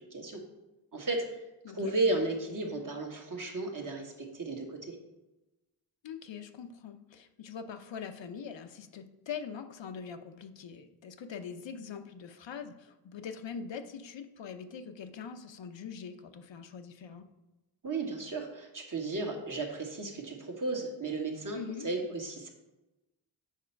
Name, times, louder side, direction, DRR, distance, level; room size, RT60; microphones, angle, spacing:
voice 1, 0.1-0.4 0.9-1.3 1.7-4.9 17.8-21.6 21.8-22.5, right 2 dB, 45° right, 1 dB, 1.6 m, -34 dB
voice 2, 6.0-17.3 21.5-21.9, left 6 dB, 70° left, 7 dB, 0.8 m, -43 dB
7.5 x 4.3 x 5.7 m, 1.0 s
wide cardioid pair, 90°, 46 cm